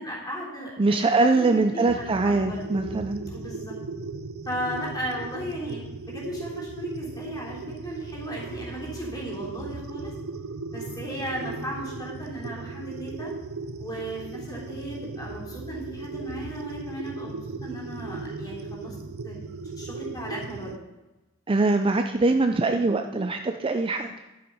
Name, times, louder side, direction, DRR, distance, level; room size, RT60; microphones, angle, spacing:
voice 1, 0.0-2.6 3.3-3.8 4.5-10.1 10.7-13.3 13.8-17.4 17.6-19.0 19.2-20.7, equal, 20° left, -4 dB, 3.4 m, -36 dB
voice 2, 0.8-3.3 21.5-24.1, right 3 dB, 25° right, 6 dB, 0.4 m, -23 dB
sound 1, 1.9-20.8, right 3 dB, 85° right, 0.7 m, -37 dB
10.5 x 7.8 x 5.4 m, 1.0 s
head